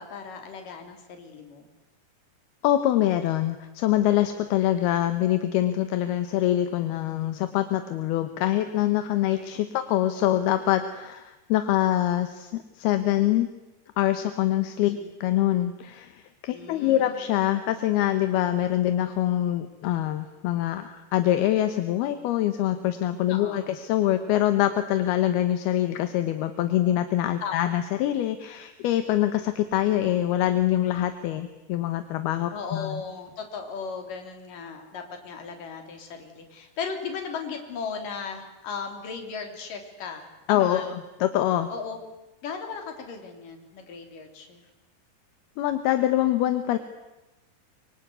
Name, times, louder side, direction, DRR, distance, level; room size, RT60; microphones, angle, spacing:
voice 1, 0.0-1.7 9.3-9.5 14.9-15.1 16.5-17.2 23.3-23.7 27.4-27.7 32.5-40.9 41.7-42.0 42.4-44.7, left 5 dB, 55° left, 5 dB, 4.6 m, -37 dB
voice 2, 2.6-13.5 14.0-33.0 40.5-41.0 41.2-41.7 45.6-46.8, left 13 dB, 75° left, 9 dB, 2.9 m, -24 dB
25.0 x 24.5 x 9.6 m, 1.0 s
omnidirectional pair, 4.9 m